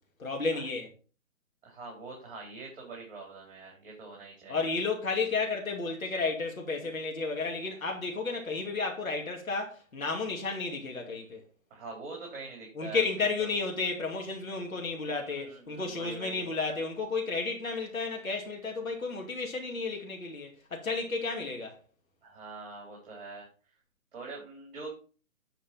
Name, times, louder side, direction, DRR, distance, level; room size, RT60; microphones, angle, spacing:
voice 1, 0.2-0.9 4.5-11.4 12.8-21.8, left 4 dB, 85° left, 2.6 m, -32 dB
voice 2, 1.6-4.7 11.7-13.5 15.0-16.5 22.2-23.5 24.1-24.9, right 3 dB, 40° right, 3.6 m, -44 dB
10.5 x 4.3 x 5.4 m
hypercardioid pair, 145°, 41 cm